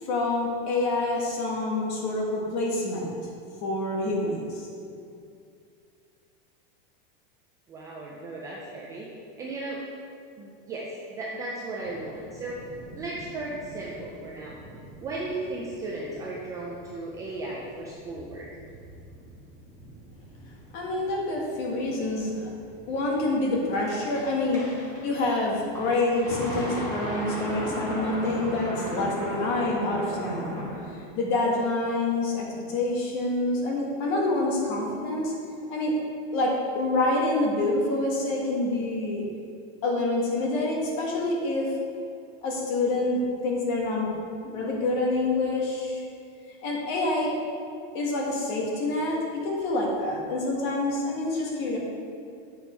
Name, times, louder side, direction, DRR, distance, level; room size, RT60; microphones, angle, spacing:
voice 1, 0.0-3.2 3.6-4.7 20.7-22.4 22.9-24.6 25.0-30.6 30.9-35.3 35.7-36.0 36.3-39.2 39.8-41.7 42.4-44.1 44.4-46.0 46.6-47.3 47.9-51.8, left 2 dB, 40° left, -2 dB, 1.6 m, -27 dB
voice 2, 7.7-9.1 9.4-9.8 10.4-12.7 12.9-14.6 15.0-18.5, right 2 dB, 10° right, -4 dB, 0.3 m, -35 dB
sound 1, 11.8-30.8, equal, 10° left, 1.5 m, -39 dB
8.5 x 6.1 x 4.4 m, 2.4 s
supercardioid pair, 180°, 29 cm